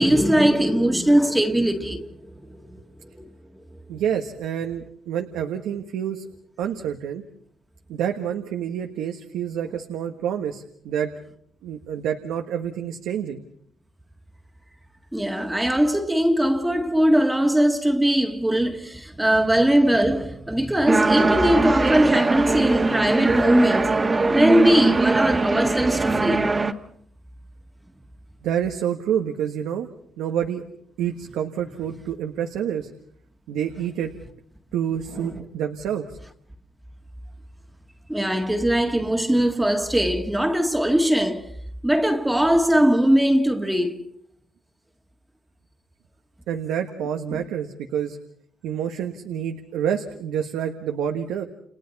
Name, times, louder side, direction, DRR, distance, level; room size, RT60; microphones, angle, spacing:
voice 1, 0.0-2.6 3.2-3.3 15.1-23.9 24.3-26.5 35.2-35.4 38.1-41.5 41.8-44.1 47.3-47.4, equal, 5° right, 1.9 m, -20 dB
voice 2, 3.9-6.3 6.6-7.2 7.9-11.1 11.6-13.4 28.4-29.9 30.2-30.6 31.0-32.9 33.5-34.1 34.7-36.2 46.5-48.2 48.6-51.4, right 9 dB, 90° right, 1.6 m, -28 dB
sound 1, 20.9-26.7, right 3 dB, 25° right, 1.8 m, -21 dB
30.0 x 29.5 x 4.2 m
cardioid pair, 90°, 0 cm